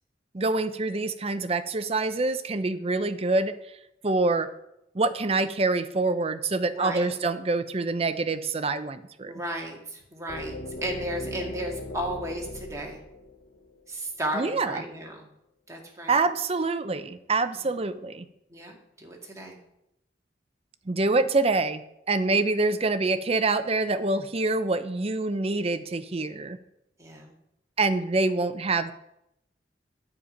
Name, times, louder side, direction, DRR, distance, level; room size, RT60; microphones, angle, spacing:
voice 1, 0.3-3.5 4.0-4.5 4.9-9.3 14.3-14.8 16.1-18.2 20.9-26.6 27.8-28.9, right 3 dB, 35° right, 11 dB, 0.6 m, -26 dB
voice 2, 6.7-7.1 9.3-13.0 13.9-15.3 15.7-16.2 18.5-19.6 27.0-27.3, right 1 dB, 20° right, 0 dB, 1.9 m, -34 dB
sound 1, 10.3-14.2, left 1 dB, 60° left, 0.9 m, -38 dB
9.9 x 8.6 x 5.2 m, 0.83 s
head